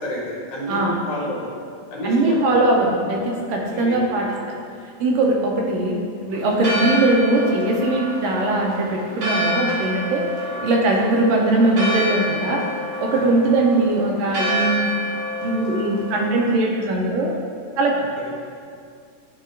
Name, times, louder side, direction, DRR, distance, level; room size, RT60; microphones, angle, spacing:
voice 1, 0.0-1.5 1.9-2.6 3.7-4.4 10.5-10.7 13.2-13.4 18.0-18.3, equal, 80° left, -4 dB, 2.6 m, -30 dB
voice 2, 2.0-4.3 5.0-10.2 10.6-12.6 13.0-14.9 15.4-17.3 17.8-17.9, right 2 dB, 80° right, -1 dB, 1.6 m, -20 dB
Church bell, 6.3-16.5, equal, 55° right, 1.1 m, -28 dB
10.5 x 3.7 x 2.5 m, 2.3 s
omnidirectional pair, 3.4 m